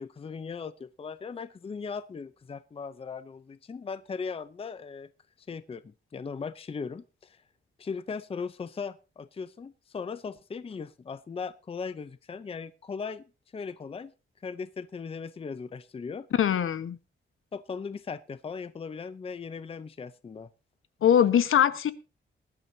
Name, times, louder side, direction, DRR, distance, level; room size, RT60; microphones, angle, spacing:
voice 1, 0.0-5.1 5.4-7.4 7.8-13.2 13.5-14.1 14.4-16.3 17.5-20.5, left 5 dB, 25° left, 14 dB, 0.6 m, -38 dB
voice 2, 16.3-17.0 21.0-21.9, left 9 dB, 75° left, 12 dB, 1.3 m, -22 dB
20.0 x 12.0 x 2.8 m, 0.31 s
wide cardioid pair, 165°, 21 cm